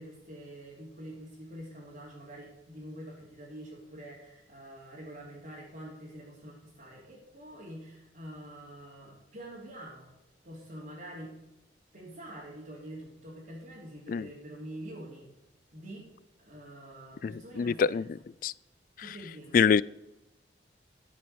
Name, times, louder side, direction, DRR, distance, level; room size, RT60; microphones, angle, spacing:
voice 1, 0.0-10.1 10.4-11.4 11.9-15.3 15.7-16.1 16.4-18.0 19.0-19.6, right 1 dB, 50° right, -8 dB, 3.2 m, -46 dB
voice 2, 17.6-18.0 18.4-18.5 19.5-19.8, left 6 dB, 50° left, 21 dB, 0.3 m, -24 dB
13.0 x 6.1 x 6.8 m, 0.95 s
head